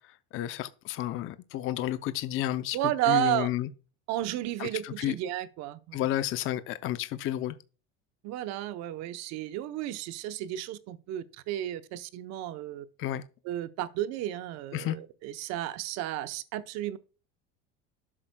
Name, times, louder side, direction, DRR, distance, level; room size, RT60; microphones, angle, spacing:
voice 1, 0.3-2.8 3.1-3.7 4.6-5.1 5.9-7.6 13.0-13.2 14.7-15.0, left 13 dB, 45° left, 0.5 m, -31 dB
voice 2, 2.7-3.5 4.1-6.0 8.2-12.8 13.4-17.0, right 13 dB, 60° right, 0.8 m, -32 dB
12.5 x 7.4 x 2.2 m
supercardioid pair, 115°, 30 cm